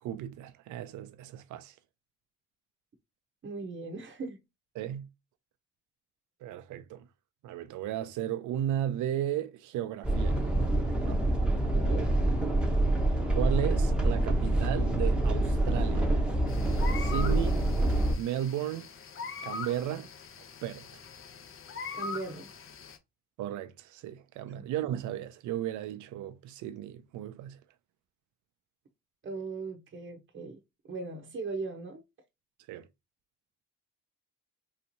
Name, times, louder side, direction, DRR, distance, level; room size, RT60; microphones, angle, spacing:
voice 1, 0.0-1.7 4.8-5.1 6.4-7.1 7.4-10.4 11.0-11.3 13.3-16.1 17.0-17.5 18.2-18.9 19.4-20.1 20.6-20.9 23.4-27.6 32.7-32.9, right 11 dB, 75° right, 0.5 m, -34 dB
voice 2, 3.4-4.4 11.7-12.1 17.1-17.4 21.9-22.5 24.5-24.6 29.2-30.6 30.9-32.0, right 3 dB, 40° right, 0.8 m, -38 dB
sound 1, 10.0-18.1, right 1 dB, 5° right, 0.8 m, -26 dB
sound 2, 16.5-23.0, left 5 dB, 45° left, 0.7 m, -42 dB
3.2 x 3.0 x 2.6 m
cardioid pair, 90°, 30 cm